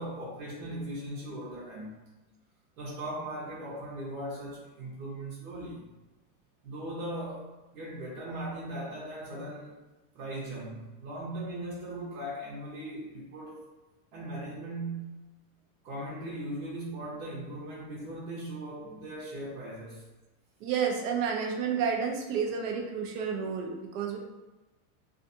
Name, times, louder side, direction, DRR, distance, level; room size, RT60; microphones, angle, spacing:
voice 1, 0.0-2.0 2.8-5.9 6.6-7.5 7.7-9.8 10.1-13.6 14.1-15.2 15.8-20.1, right 1 dB, 90° right, -6 dB, 0.9 m, -39 dB
voice 2, 20.6-24.2, right 6 dB, 60° right, 1 dB, 0.6 m, -30 dB
2.4 x 2.4 x 2.7 m, 1.1 s
supercardioid pair, 160°, 44 cm